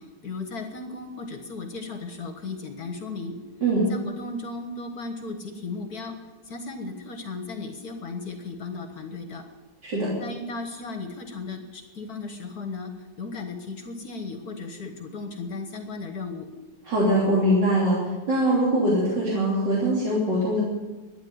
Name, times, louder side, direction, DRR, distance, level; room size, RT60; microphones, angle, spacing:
voice 1, 0.0-3.4 3.9-6.2 6.5-9.4 10.2-16.5, left 3 dB, 55° left, 6 dB, 1.8 m, -36 dB
voice 2, 16.8-18.0 18.3-20.6, right 1 dB, 70° right, -6 dB, 3.8 m, -22 dB
13.0 x 9.7 x 9.5 m, 1.2 s
omnidirectional pair, 2.0 m